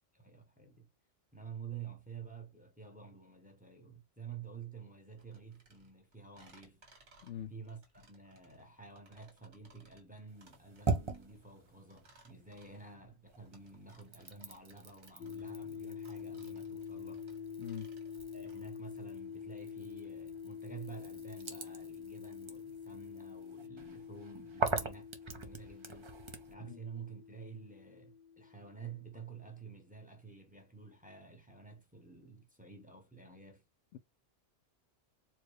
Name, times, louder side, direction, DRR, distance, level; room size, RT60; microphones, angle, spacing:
voice 1, 0.1-0.9 1.3-6.8 7.5-17.2 18.3-26.1 26.5-33.6, right 6 dB, 10° right, 0.8 m, -50 dB
sound 1, 5.2-18.7, right 2 dB, 80° right, 1.8 m, -64 dB
voice 2, 7.2-7.5 17.6-17.9 26.7-26.8 33.9-34.0, left 9 dB, 90° left, 0.9 m, -43 dB
sound 2, 10.3-12.9 13.3-26.5, right 4 dB, 30° right, 0.6 m, -43 dB
sound 3, 15.2-29.2, left 7 dB, 60° left, 0.7 m, -47 dB
4.5 x 2.3 x 3.1 m
omnidirectional pair, 1.2 m